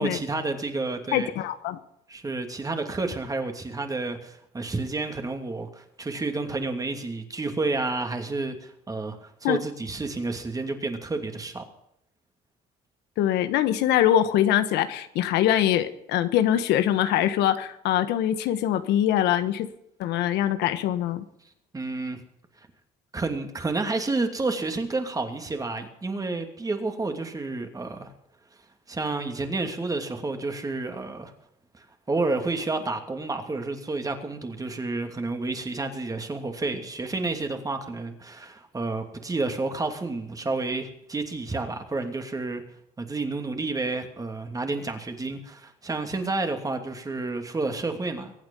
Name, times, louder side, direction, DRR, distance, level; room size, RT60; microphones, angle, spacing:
voice 1, 0.0-1.3 2.1-11.7 21.7-22.2 23.1-28.1 28.9-31.3 31.7-42.6 43.0-48.3, right 3 dB, 20° right, 5 dB, 2.7 m, -30 dB
voice 2, 1.1-1.8 9.4-9.6 13.2-19.7 20.0-21.2, left 11 dB, 85° left, 11 dB, 1.3 m, -23 dB
23.5 x 8.9 x 5.5 m, 0.77 s
cardioid pair, 110°, 17 cm